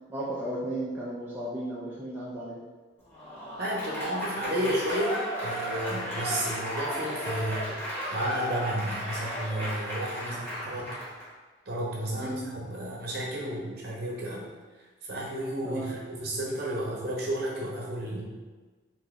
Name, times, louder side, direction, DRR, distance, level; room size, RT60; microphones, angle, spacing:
voice 1, 0.1-2.6 10.2-10.4 12.2-12.4 15.6-15.9, right 1 dB, 10° right, -7 dB, 0.4 m, -34 dB
Applause / Crowd, 3.1-11.3, equal, 10° left, 0.9 m, -34 dB
voice 2, 3.6-7.6 8.1-11.0 11.7-14.5 15.0-18.2, right 1 dB, 50° right, -4 dB, 0.8 m, -32 dB
3.0 x 2.6 x 3.6 m, 1.3 s
head